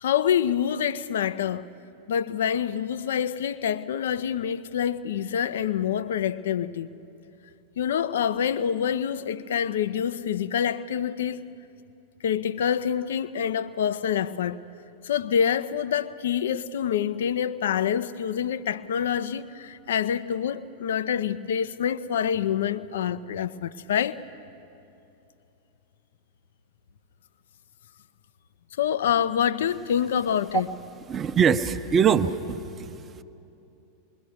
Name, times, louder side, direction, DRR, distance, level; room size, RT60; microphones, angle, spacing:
voice 1, 0.0-1.7 2.1-6.9 7.8-11.4 12.2-14.6 15.0-24.2 28.8-30.7, left 8 dB, 60° left, 0.6 m, -26 dB
voice 2, 31.1-33.0, right 7 dB, 25° right, 0.8 m, -23 dB
26.0 x 21.5 x 6.4 m
figure-of-eight pair, 90°, 0 cm